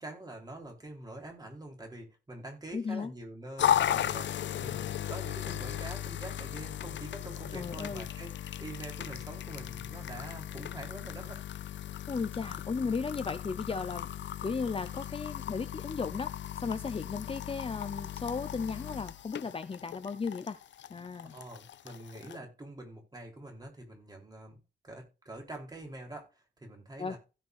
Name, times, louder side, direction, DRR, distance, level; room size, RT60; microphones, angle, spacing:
voice 1, 0.0-11.4 21.3-24.6 24.8-27.2, right 1 dB, 20° right, 3.5 m, -45 dB
voice 2, 2.7-3.1 7.5-8.1 12.1-14.1 14.4-20.6 20.9-21.3 27.0-27.2, left 5 dB, 30° left, 0.7 m, -35 dB
sound 1, 3.6-22.4, left 11 dB, 65° left, 0.5 m, -36 dB
16.0 x 5.8 x 2.5 m
wide cardioid pair, 150°, 20 cm